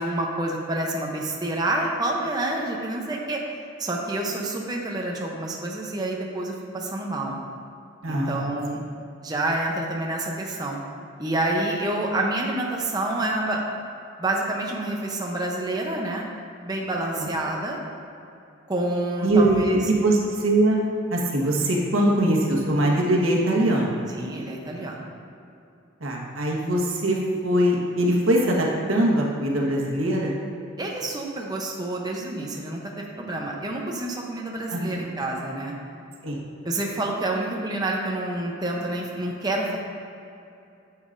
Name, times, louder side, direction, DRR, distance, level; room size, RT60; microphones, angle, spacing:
voice 1, 0.0-3.4 3.8-7.4 8.1-8.8 9.2-10.8 11.2-13.6 14.2-16.3 16.6-17.8 18.7-19.8 24.1-25.1 30.8-35.7 36.6-39.8, right 2 dB, 20° right, -1 dB, 0.6 m, -28 dB
voice 2, 8.0-8.5 17.1-17.3 19.2-20.8 21.1-24.0 26.0-30.4 34.7-35.0 36.2-36.5, right 1 dB, 90° right, -2 dB, 1.3 m, -22 dB
9.9 x 7.3 x 2.5 m, 2.6 s
head